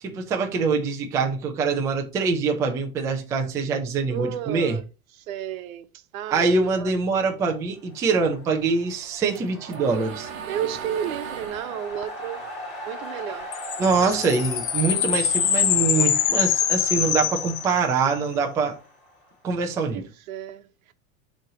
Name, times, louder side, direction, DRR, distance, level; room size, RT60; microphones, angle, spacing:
voice 1, 0.0-4.8 6.3-10.3 13.8-18.8 19.4-20.0, right 4 dB, 10° right, 0.3 m, -24 dB
voice 2, 4.1-4.8 5.2-6.5 6.7-6.9 10.5-12.5 12.8-13.5 13.8-14.2 19.9-20.9, right 10 dB, 80° right, 1.0 m, -32 dB
sound 1, 7.6-19.6, left 1 dB, 25° left, 2.4 m, -41 dB
sound 2, 8.9-13.4 13.8-15.3, right 6 dB, 30° right, 1.2 m, -39 dB
sound 3, 13.5-18.1, left 10 dB, 50° left, 1.0 m, -24 dB
7.4 x 3.1 x 4.7 m
supercardioid pair, 150°, 42 cm